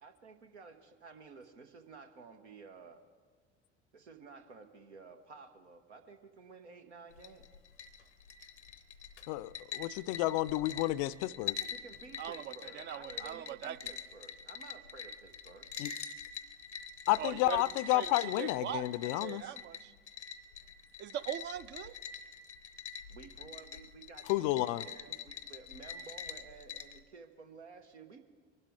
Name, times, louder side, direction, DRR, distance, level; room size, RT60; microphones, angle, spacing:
voice 1, 0.0-3.0 3.9-7.5 11.5-15.7 23.1-28.2, right 4 dB, 75° right, 1.1 m, -53 dB
sound 1, 7.1-27.0, left 7 dB, 85° left, 0.7 m, -45 dB
voice 2, 9.3-11.6 15.8-15.9 17.1-19.4 24.3-24.8, left 17 dB, 50° left, 0.5 m, -31 dB
voice 3, 12.2-13.8 17.2-17.6 17.9-19.9 21.0-22.0, right 11 dB, 35° right, 0.4 m, -41 dB
23.0 x 12.0 x 3.6 m
figure-of-eight pair, 65°, 34 cm